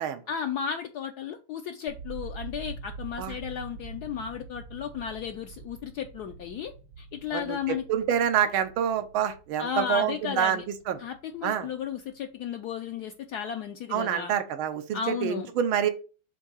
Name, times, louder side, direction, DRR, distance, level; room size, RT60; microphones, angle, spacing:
voice 1, 0.3-6.7 7.0-7.8 9.6-10.6 11.0-14.3 14.9-15.5, left 7 dB, 75° left, 0.9 m, -34 dB
sound 1, 1.9-11.9 12.1-12.9, right 4 dB, 70° right, 1.4 m, -45 dB
voice 2, 7.3-11.0 11.4-11.7 13.9-15.9, right 9 dB, 90° right, 1.6 m, -27 dB
7.2 x 2.7 x 5.4 m
omnidirectional pair, 2.2 m